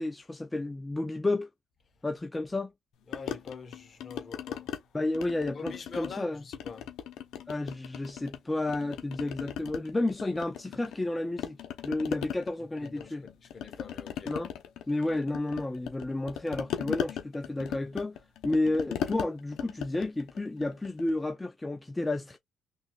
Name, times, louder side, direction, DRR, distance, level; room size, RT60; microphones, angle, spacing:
voice 1, 0.0-1.5 2.0-2.7 4.9-6.4 7.5-11.6 11.8-13.3 14.3-14.5 14.9-18.2 18.4-22.4, left 2 dB, 15° left, 0.6 m, -31 dB
sound 1, 3.1-4.8 5.1-6.2 6.5-8.4 8.7-11.1 11.4-21.2, left 9 dB, 85° left, 0.8 m, -38 dB
voice 2, 3.1-4.7 5.5-6.9 12.8-14.3, left 5 dB, 45° left, 1.2 m, -45 dB
3.8 x 3.0 x 2.4 m
cardioid pair, 90°, 0 cm